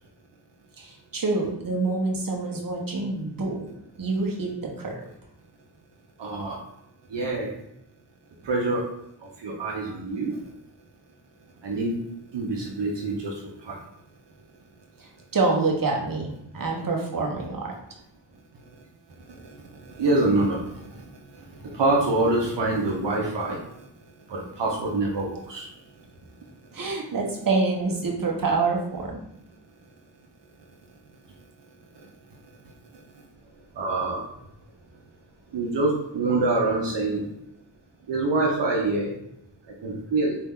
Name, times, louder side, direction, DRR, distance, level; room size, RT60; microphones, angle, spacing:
voice 1, 0.8-3.7 4.0-4.9 15.0-17.7 26.7-29.2, right 3 dB, 50° right, 0 dB, 1.2 m, -26 dB
voice 2, 6.2-6.6 7.1-7.5 8.4-8.8 9.4-10.4 11.6-12.0 12.3-13.3 13.6-13.8 19.8-21.0 21.7-23.6 24.3-25.7 33.8-34.2 35.5-37.3 38.1-39.1 39.8-40.4, right 2 dB, 80° right, -2 dB, 1.0 m, -25 dB
4.4 x 2.8 x 3.7 m, 0.78 s
cardioid pair, 45°, 42 cm